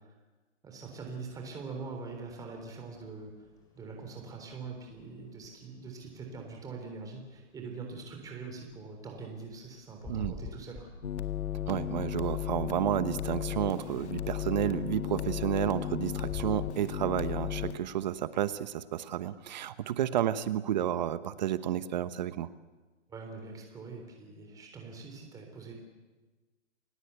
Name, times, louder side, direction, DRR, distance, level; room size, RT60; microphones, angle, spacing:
voice 1, 0.6-3.3 3.8-10.9 23.1-25.7, right 4 dB, 10° right, 2 dB, 3.6 m, -43 dB
sound 1, 1.0-19.4, left 3 dB, 10° left, 4.5 m, -54 dB
sound 2, 11.0-17.8, left 12 dB, 65° left, 2.0 m, -35 dB
voice 2, 11.7-22.5, right 11 dB, 40° right, 14 dB, 1.0 m, -31 dB
28.5 x 17.5 x 8.2 m, 1.3 s
hypercardioid pair, 155°, 36 cm